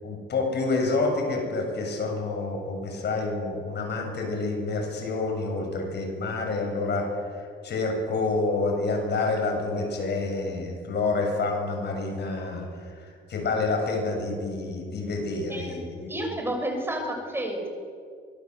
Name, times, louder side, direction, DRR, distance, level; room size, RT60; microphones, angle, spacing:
voice 1, 0.0-16.1, left 3 dB, 60° left, 3 dB, 7.2 m, -28 dB
voice 2, 15.5-15.8 16.1-17.7, right 1 dB, 10° right, 2 dB, 6.7 m, -30 dB
24.5 x 21.5 x 8.1 m, 2.2 s
cardioid pair, 90°, 20 cm